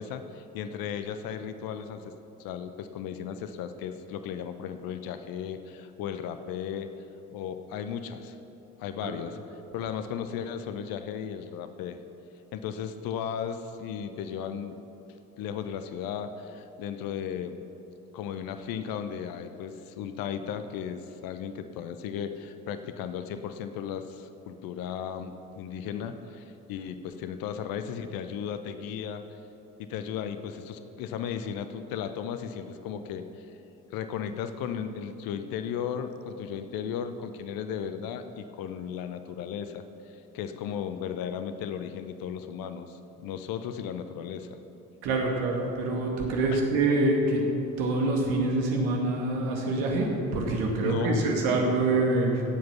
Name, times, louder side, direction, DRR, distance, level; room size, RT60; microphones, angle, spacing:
voice 1, 0.0-2.1 2.4-6.9 7.3-8.4 8.8-9.4 9.7-12.0 12.5-14.8 15.4-17.7 18.1-29.2 29.8-33.5 33.9-44.6 46.5-46.6 50.8-51.3, left 8 dB, 50° left, 9 dB, 0.9 m, -35 dB
voice 2, 45.0-47.4 47.8-52.4, right 2 dB, 60° right, 0 dB, 2.2 m, -26 dB
16.0 x 7.9 x 5.6 m, 2.9 s
figure-of-eight pair, 55°, 44 cm